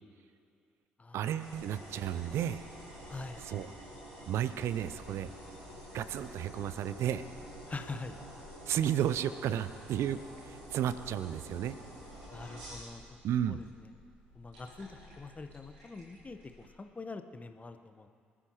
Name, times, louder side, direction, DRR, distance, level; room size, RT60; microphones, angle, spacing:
voice 1, 1.1-2.6 3.4-3.7 4.3-5.3 5.9-7.2 8.7-11.8 13.2-13.6, right 10 dB, 60° right, 13 dB, 0.6 m, -33 dB
sound 1, 1.4-16.7, equal, 75° right, 4.2 m, -49 dB
voice 2, 3.0-3.4 7.7-8.2 12.3-13.0 13.5-13.9 14.3-18.1, left 3 dB, 30° left, 8 dB, 1.2 m, -44 dB
26.0 x 14.0 x 3.1 m, 2.3 s
figure-of-eight pair, 40°, 5 cm